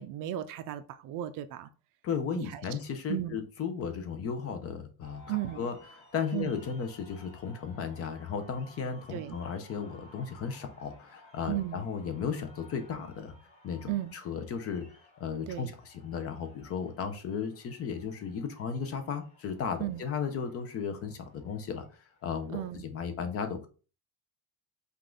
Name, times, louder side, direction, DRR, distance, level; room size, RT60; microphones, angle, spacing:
voice 1, 0.0-1.7 2.4-2.6 3.1-3.4 5.3-5.7 6.3-6.5 9.1-9.4 11.5-11.8 13.9-14.1 15.5-15.7 19.8-20.0 22.5-22.8, right 13 dB, 55° right, 0.5 m, -35 dB
voice 2, 2.0-13.3 13.6-14.8 15.2-21.9 22.2-23.7, left 6 dB, 35° left, 0.7 m, -35 dB
sound 1, 5.0-22.8, left 2 dB, 15° left, 1.6 m, -58 dB
5.3 x 2.5 x 3.7 m
cardioid pair, 160°, 39 cm